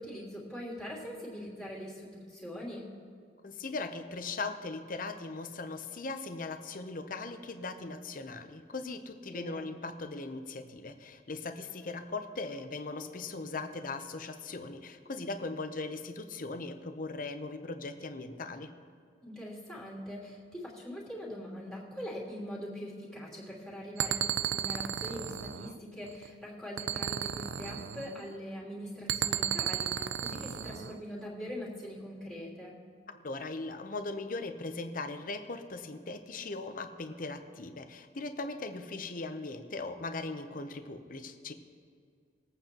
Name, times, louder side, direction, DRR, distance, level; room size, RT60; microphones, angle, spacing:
voice 1, 0.0-2.9 9.3-9.7 19.2-32.8, equal, 5° left, -7 dB, 3.0 m, -42 dB
voice 2, 3.4-18.7 33.2-41.5, left 3 dB, 50° left, 8 dB, 0.8 m, -39 dB
sound 1, 24.0-26.3 26.8-28.4 29.1-31.0, right 9 dB, 70° right, 0.4 m, -34 dB
22.0 x 8.9 x 3.0 m, 2.3 s
head